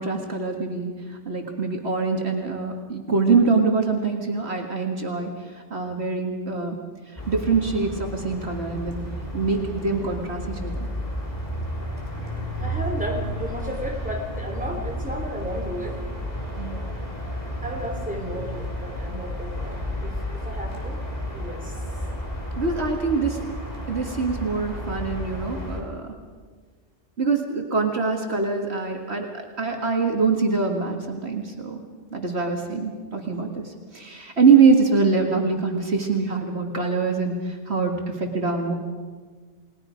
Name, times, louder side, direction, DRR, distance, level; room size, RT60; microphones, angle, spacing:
voice 1, 0.0-6.8 7.1-9.0 9.3-10.9 16.6-16.9 22.6-23.4 23.9-26.1 27.2-31.8 32.1-38.7, right 4 dB, 60° right, 2 dB, 2.1 m, -24 dB
sound 1, 7.2-25.8, equal, 35° left, 3.9 m, -32 dB
voice 2, 12.6-16.0 16.7-16.8 17.6-21.0 21.3-21.8, equal, 5° right, 0 dB, 3.4 m, -33 dB
29.5 x 20.0 x 5.1 m, 1.5 s
omnidirectional pair, 1.2 m